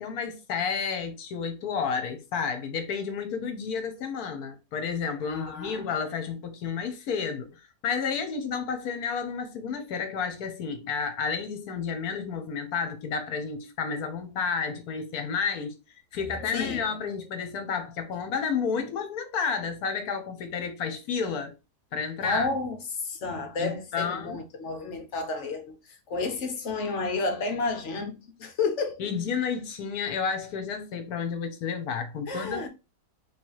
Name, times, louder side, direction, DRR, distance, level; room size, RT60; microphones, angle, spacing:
voice 1, 0.0-7.5 7.8-15.7 16.1-21.5 21.9-22.5 23.6-24.4 29.0-32.7, left 6 dB, 70° left, 1.3 m, -31 dB
voice 2, 5.3-5.8 16.5-16.8 22.2-22.8 23.0-25.7 26.1-29.0 32.3-32.7, left 3 dB, 55° left, 1.0 m, -31 dB
3.2 x 2.8 x 4.6 m
omnidirectional pair, 1.7 m